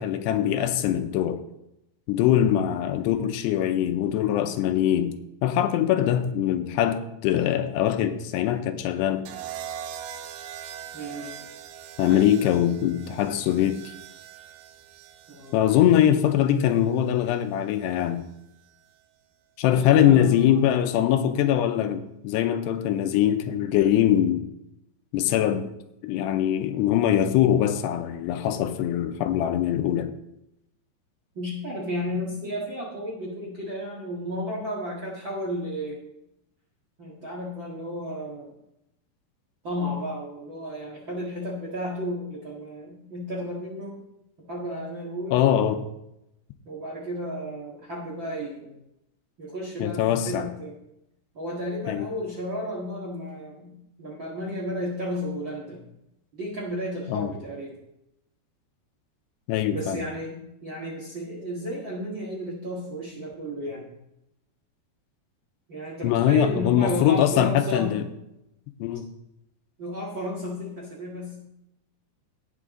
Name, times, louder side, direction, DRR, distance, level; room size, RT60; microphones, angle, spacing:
voice 1, 0.0-1.4 2.1-5.2 5.4-9.3 12.0-13.8 15.5-18.3 19.6-24.5 25.1-25.7 26.0-30.1 45.3-45.8 49.8-50.5 51.9-52.1 57.1-57.3 59.5-60.0 66.0-68.0 68.8-69.1, left 10 dB, 85° left, 2.8 m, -22 dB
sound 1, 9.3-17.4 18.6-19.0, right 9 dB, 80° right, 2.1 m, -42 dB
voice 2, 10.9-11.4 12.0-12.4 15.3-15.6 19.7-20.6 31.3-36.0 37.0-38.5 39.6-44.0 44.4-45.4 46.6-48.8 49.4-50.7 51.3-55.9 56.4-57.7 59.7-63.9 65.7-68.0 69.8-71.4, equal, 45° right, 1.6 m, -33 dB
17.5 x 6.3 x 3.7 m
omnidirectional pair, 4.9 m